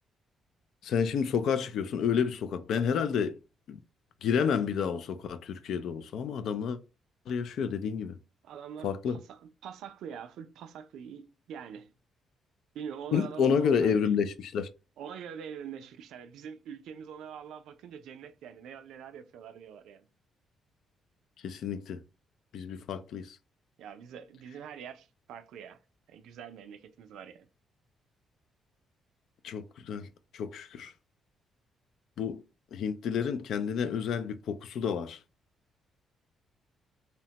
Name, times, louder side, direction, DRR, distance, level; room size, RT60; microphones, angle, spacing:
voice 1, 0.8-3.4 3.7-3.8 4.2-6.8 7.3-8.1 8.8-9.2 13.1-14.7 21.4-22.0 22.5-23.4 29.4-30.1 30.3-30.9 32.2-32.4 32.7-35.2, left 7 dB, 70° left, 0.3 m, -30 dB
voice 2, 8.4-11.9 12.7-14.2 15.0-20.1 23.8-25.8 26.1-27.5, right 7 dB, 80° right, 0.3 m, -44 dB
2.8 x 2.1 x 2.8 m
cardioid pair, 90°, 0 cm